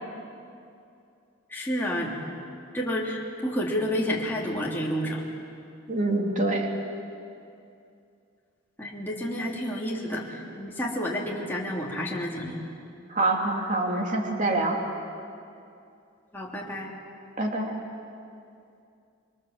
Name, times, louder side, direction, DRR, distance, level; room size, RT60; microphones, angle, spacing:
voice 1, 1.5-2.2 2.7-5.2 8.8-12.6 16.3-16.9, equal, 10° left, -4 dB, 3.2 m, -30 dB
voice 2, 5.9-6.7 13.1-14.8 17.4-17.8, right 2 dB, 40° right, 1 dB, 2.8 m, -25 dB
27.0 x 23.5 x 7.5 m, 2.5 s
head